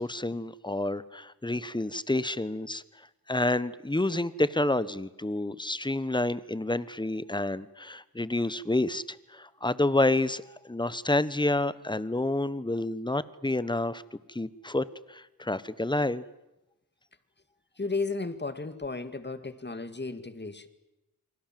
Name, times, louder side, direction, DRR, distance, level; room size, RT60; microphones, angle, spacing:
voice 1, 0.0-2.8 3.3-14.0 14.3-16.2, left 2 dB, 10° left, 17 dB, 1.1 m, -29 dB
voice 2, 17.8-20.7, left 3 dB, 30° left, 11 dB, 2.1 m, -34 dB
29.5 x 25.5 x 7.7 m, 0.97 s
wide cardioid pair, 105°, 36 cm